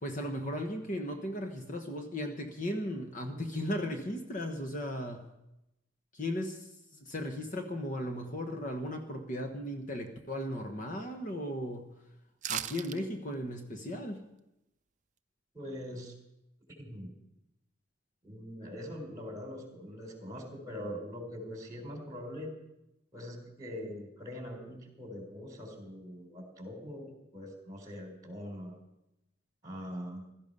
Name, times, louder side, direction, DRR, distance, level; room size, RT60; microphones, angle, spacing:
voice 1, 0.0-5.3 6.1-6.7 6.9-11.9 12.5-14.2, equal, 40° left, 4 dB, 1.2 m, -36 dB
sound 1, 12.4-13.0 13.3-13.4, right 11 dB, 40° right, 0.5 m, -36 dB
voice 2, 15.5-16.1 16.8-17.1 18.2-22.5 23.1-28.8 29.6-30.3, equal, 20° right, 2 dB, 3.8 m, -42 dB
16.0 x 13.5 x 5.4 m, 0.88 s
head